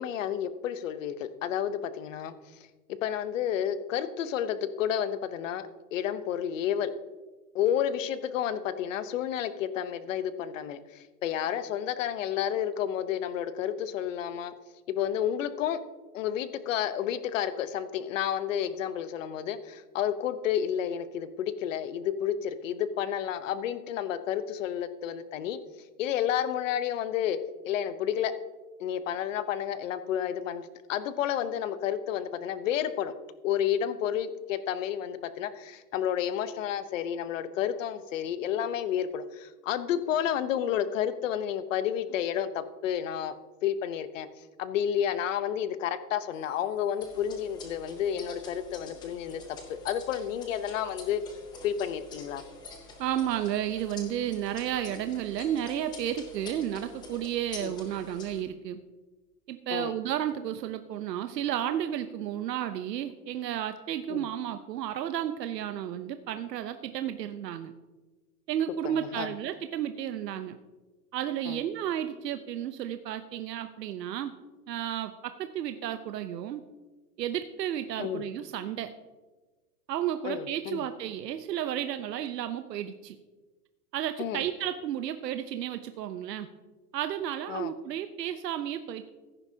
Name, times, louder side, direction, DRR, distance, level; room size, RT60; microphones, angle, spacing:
voice 1, 0.0-2.3 3.0-6.9 7.5-14.5 14.9-15.8 16.1-25.6 26.0-27.4 27.6-28.3 28.8-33.1 33.4-43.3 43.6-44.3 44.6-49.4 49.7-51.2 51.6-52.4 57.6-57.7 59.7-59.9 64.1-64.3 68.8-69.3 71.5-71.6 78.0-78.2 80.2-80.8 84.2-84.4 87.5-87.7, left 9 dB, 50° left, 13 dB, 0.8 m, -31 dB
sound 1, 47.0-58.4, left 2 dB, 10° left, 0.6 m, -46 dB
voice 2, 53.0-58.8 59.5-67.7 68.5-70.6 71.1-74.3 74.7-76.6 77.2-78.9 79.9-83.2 83.9-86.5 86.9-89.1, right 10 dB, 85° right, 9 dB, 0.8 m, -32 dB
15.5 x 10.0 x 2.8 m, 1.2 s
hypercardioid pair, 160°, 48 cm